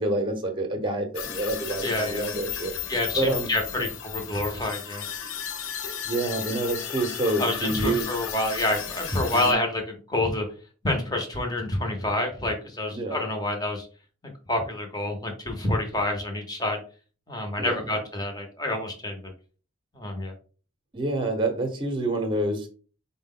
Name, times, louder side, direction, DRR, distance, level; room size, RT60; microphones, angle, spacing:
voice 1, 0.0-2.7 3.2-3.5 3.8-3.9 6.0-8.1 9.3-9.5 12.9-13.2 17.6-17.8 20.9-22.7, right 2 dB, 25° right, 5 dB, 0.7 m, -27 dB
sound 1, 1.1-9.5, left 8 dB, 85° left, 0.6 m, -35 dB
voice 2, 1.8-2.3 2.9-5.1 7.4-10.5 10.8-13.9 14.2-16.8 17.3-19.2 19.9-20.3, left 2 dB, 20° left, 3 dB, 0.8 m, -28 dB
4.5 x 2.1 x 3.7 m, 0.38 s
head